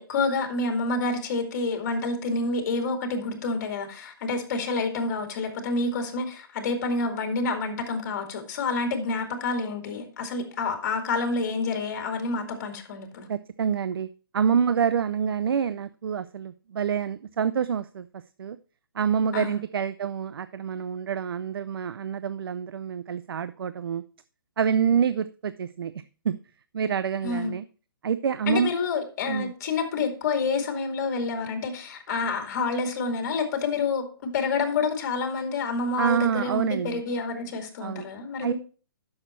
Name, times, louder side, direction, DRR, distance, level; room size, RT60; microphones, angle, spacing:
voice 1, 0.0-13.3 19.3-19.6 27.2-27.6 28.5-38.6, left 3 dB, 45° left, 2.3 m, -28 dB
voice 2, 13.3-14.1 14.3-18.1 18.4-18.6 19.0-24.0 24.6-25.9 26.2-26.4 26.7-27.6 28.0-28.7 29.3-29.5 36.0-37.0 37.8-38.1 38.4-38.5, right 7 dB, 75° right, 0.5 m, -27 dB
10.0 x 6.5 x 4.4 m
hypercardioid pair, 155°, 12 cm